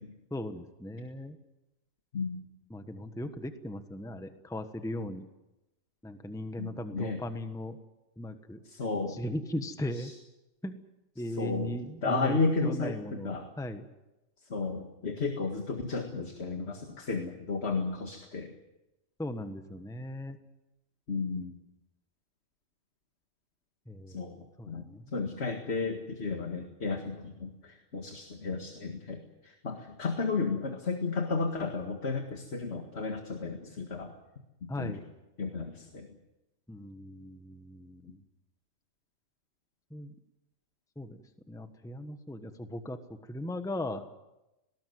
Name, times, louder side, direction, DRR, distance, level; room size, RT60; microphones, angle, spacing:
voice 1, 0.3-1.4 2.7-5.2 6.0-7.8 8.2-8.6 9.1-10.1 10.6-10.7 11.2-13.9 19.2-20.4 23.9-25.2 34.7-35.0 36.7-38.2 39.9-40.1 41.0-43.0 43.3-44.1, left 1 dB, 5° left, 8 dB, 1.2 m, -38 dB
voice 2, 6.6-7.2 8.7-9.2 9.9-10.1 11.4-11.8 12.0-13.5 14.5-18.5 21.1-21.6 24.1-24.4 24.7-24.8 25.1-34.1 34.6-35.0 35.4-36.1, left 4 dB, 50° left, 4 dB, 2.1 m, -33 dB
19.5 x 18.0 x 9.5 m, 0.97 s
omnidirectional pair, 1.4 m